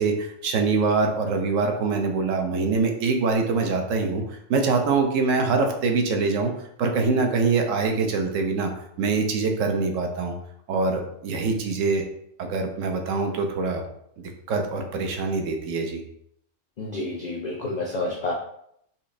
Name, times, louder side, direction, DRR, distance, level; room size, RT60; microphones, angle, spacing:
voice 1, 0.0-6.5 6.8-10.4 10.7-12.0 12.4-13.8 14.5-16.0, right 4 dB, 75° right, 4 dB, 1.0 m, -24 dB
voice 2, 16.8-18.3, left 2 dB, 70° left, -1 dB, 0.4 m, -29 dB
4.2 x 2.8 x 2.5 m, 0.72 s
omnidirectional pair, 1.4 m